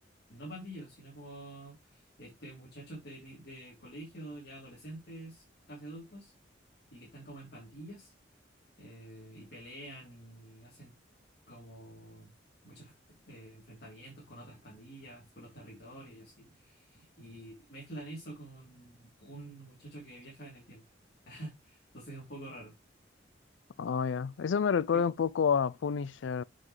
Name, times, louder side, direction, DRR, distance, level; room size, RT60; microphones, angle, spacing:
voice 1, 0.3-6.3 6.9-8.1 8.8-10.9 11.5-12.3 12.6-12.9 13.3-20.8 21.3-22.7 24.9-25.0, right 1 dB, 55° left, 3.1 m, -48 dB
voice 2, 23.8-26.4, left 6 dB, 75° left, 0.4 m, -29 dB
7.3 x 6.2 x 3.1 m
head